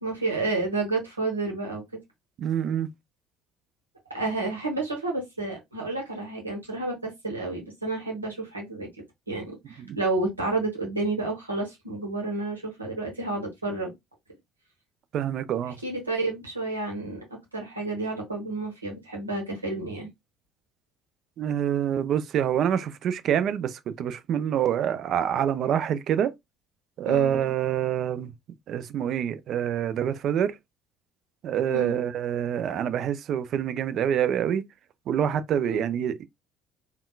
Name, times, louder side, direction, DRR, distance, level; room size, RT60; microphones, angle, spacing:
voice 1, 0.0-1.8 4.1-8.9 9.3-13.9 15.8-17.2 17.5-20.1 27.0-27.3 31.7-31.9 35.6-35.8, right 2 dB, 85° right, 1.0 m, -30 dB
voice 2, 2.4-2.9 9.8-10.0 15.1-15.8 21.4-26.3 27.0-28.3 28.7-30.5 31.4-34.6 35.1-36.3, right 9 dB, 50° right, 0.4 m, -26 dB
3.6 x 2.2 x 2.2 m
figure-of-eight pair, 55°, 0 cm